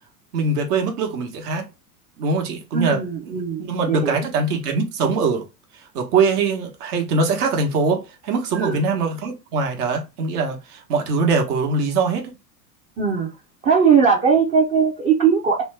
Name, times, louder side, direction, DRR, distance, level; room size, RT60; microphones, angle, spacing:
voice 1, 0.3-1.7 2.2-3.3 3.6-5.5 5.7-12.2, right 4 dB, 70° right, 1.1 m, -22 dB
voice 2, 2.7-4.3 8.5-8.8 13.0-13.3 13.6-15.6, right 6 dB, 20° right, 0.4 m, -19 dB
3.0 x 2.2 x 3.2 m
hypercardioid pair, 100°, 47 cm